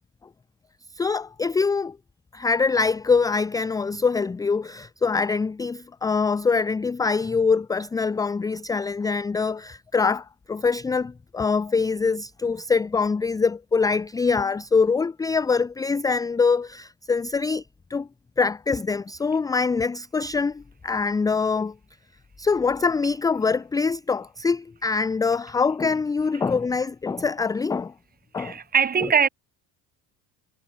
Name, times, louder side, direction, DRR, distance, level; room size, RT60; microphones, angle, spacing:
voice 1, 0.9-2.0 2.3-17.6 17.9-18.1 18.4-21.7 22.4-27.9 28.3-28.6, left 4 dB, 10° left, 0.4 m, -24 dB
voice 2, 28.4-29.3, right 7 dB, 20° right, 2.0 m, -21 dB
cardioid pair, 175°, 42 cm